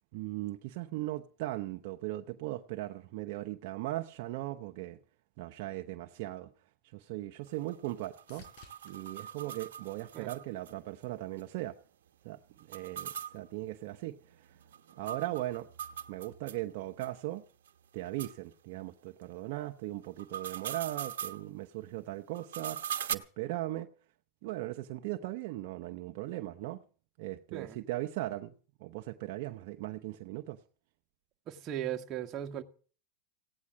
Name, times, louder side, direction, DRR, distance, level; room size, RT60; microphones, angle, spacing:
voice 1, 0.1-5.0 5.4-6.5 6.9-8.5 8.8-11.8 12.2-12.4 12.7-14.6 15.0-15.7 16.1-17.4 17.9-23.9 24.4-26.8 27.2-28.5 28.8-30.6, right 16 dB, 60° right, 0.9 m, -38 dB
sound 1, 6.5-10.8 11.3-11.9 19.7-19.8, left 4 dB, 55° left, 4.4 m, -62 dB
sound 2, 7.5-10.7 11.0-11.1 11.4-11.5 12.6-16.6 17.0-17.1 17.7-17.8 18.2-18.3 20.0-21.4 22.3-23.1, right 9 dB, 85° right, 1.2 m, -41 dB
voice 2, 31.5-32.6, right 11 dB, 35° right, 1.7 m, -37 dB
16.5 x 9.5 x 7.5 m
supercardioid pair, 120°, 0 cm